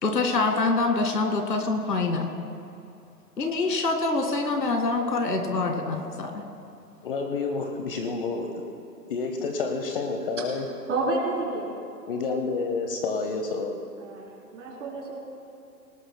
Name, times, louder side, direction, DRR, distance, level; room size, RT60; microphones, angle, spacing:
voice 1, 0.0-2.3 3.4-6.4, left 3 dB, 80° left, 4 dB, 2.2 m, -25 dB
voice 2, 7.0-8.5 9.1-10.7 12.1-13.8, left 4 dB, 35° left, 4 dB, 0.9 m, -29 dB
voice 3, 10.9-11.8 14.0-14.3 14.5-15.2, right 2 dB, 45° right, -2 dB, 3.8 m, -29 dB
19.0 x 19.0 x 2.2 m, 2.6 s
hypercardioid pair, 145°, 49 cm